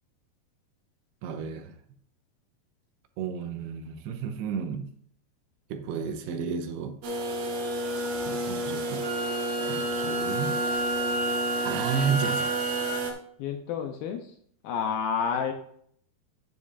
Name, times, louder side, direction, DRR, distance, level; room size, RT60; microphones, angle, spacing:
voice 1, 1.2-1.8 3.2-4.9 5.7-7.0 8.3-9.1 9.6-10.6 11.6-12.6, right 6 dB, 80° right, 7 dB, 2.8 m, -32 dB
sound 1, 7.0-13.1, right 1 dB, 65° right, 2.9 m, -31 dB
Wind instrument woodwind instrument, 9.0-13.0, right 2 dB, 5° left, 0.8 m, -32 dB
voice 2, 13.4-14.4 14.6-15.5, left 7 dB, 80° left, 4 dB, 2.3 m, -29 dB
9.6 x 9.6 x 2.5 m, 0.63 s
omnidirectional pair, 4.7 m